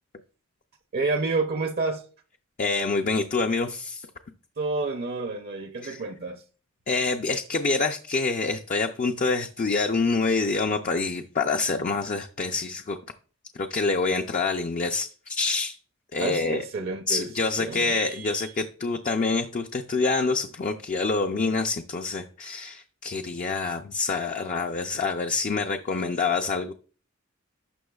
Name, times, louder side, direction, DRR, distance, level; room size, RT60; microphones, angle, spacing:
voice 1, 0.9-2.0 4.6-6.4 16.2-17.3 17.6-18.5, right 3 dB, 50° right, 0.6 m, -29 dB
voice 2, 2.6-4.1 5.8-6.0 6.9-13.0 13.6-15.8 16.1-16.6 17.1-26.7, left 3 dB, 40° left, 0.4 m, -26 dB
11.5 x 6.2 x 2.3 m
head